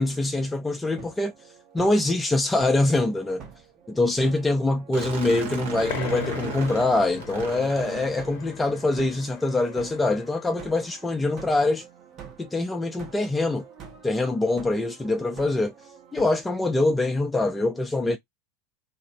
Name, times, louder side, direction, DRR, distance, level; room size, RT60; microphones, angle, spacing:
voice 1, 0.0-1.3 1.7-3.4 3.9-11.8 12.4-13.6 14.0-15.7 16.1-18.2, left 2 dB, 15° left, 0.4 m, -24 dB
sound 1, 0.9-16.6, right 7 dB, 40° right, 1.0 m, -46 dB
sound 2, 4.9-8.9, right 5 dB, 70° right, 1.1 m, -35 dB
sound 3, 5.9-11.1, left 9 dB, 55° left, 0.8 m, -40 dB
2.4 x 2.0 x 2.7 m
hypercardioid pair, 85°, 0 cm